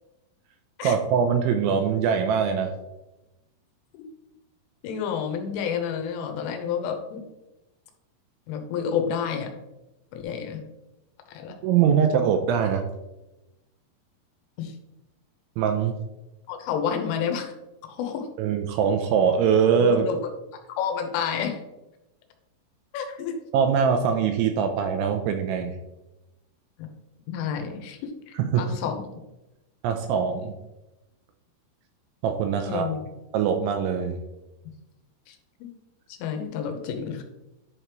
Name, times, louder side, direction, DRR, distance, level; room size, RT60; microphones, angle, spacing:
voice 1, 0.8-2.7 11.6-12.8 15.6-16.0 18.4-20.1 23.5-25.7 28.4-28.6 29.8-30.6 32.2-32.9 33.3-34.2, right 7 dB, 85° right, 5 dB, 2.8 m, -22 dB
voice 2, 4.8-7.2 8.5-9.5 10.1-10.6 11.3-11.6 14.6-14.7 16.5-17.5 17.8-18.3 19.8-20.2 20.5-21.6 22.9-23.3 26.8-26.9 27.3-29.1 32.7-33.0 35.3-35.7 36.2-37.2, left 7 dB, 90° left, 5 dB, 3.3 m, -30 dB
11.0 x 5.0 x 3.0 m, 0.97 s
omnidirectional pair, 5.8 m